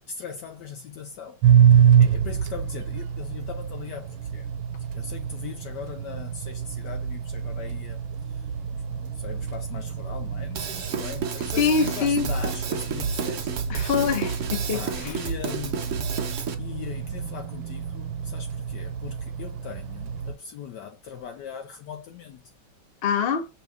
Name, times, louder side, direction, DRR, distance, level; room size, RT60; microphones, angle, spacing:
voice 1, 0.0-1.4 1.7-4.5 5.0-8.0 8.3-13.5 14.7-16.0 16.6-22.4, left 7 dB, 70° left, 1.1 m, -39 dB
sound 1, 1.4-20.3, right 8 dB, 90° right, 1.5 m, -26 dB
Drum kit / Drum, 10.5-16.5, right 6 dB, 60° right, 0.8 m, -31 dB
voice 2, 11.6-12.3 13.7-15.2 23.0-23.5, left 6 dB, 45° left, 0.9 m, -24 dB
5.6 x 2.8 x 3.4 m
omnidirectional pair, 2.2 m